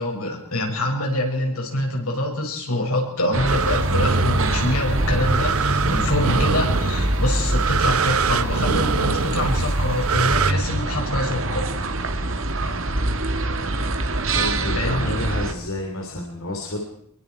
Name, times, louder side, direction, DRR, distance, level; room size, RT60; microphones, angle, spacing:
voice 1, 0.0-11.7 14.6-15.1, left 1 dB, 90° left, 1 dB, 6.4 m, -25 dB
sound 1, 3.3-15.5, right 2 dB, 65° right, 1.9 m, -24 dB
sound 2, 3.5-10.5, right 5 dB, 80° right, 0.9 m, -25 dB
voice 2, 14.3-16.8, left 1 dB, 75° left, 1 dB, 3.1 m, -29 dB
25.0 x 22.5 x 4.7 m, 0.70 s
head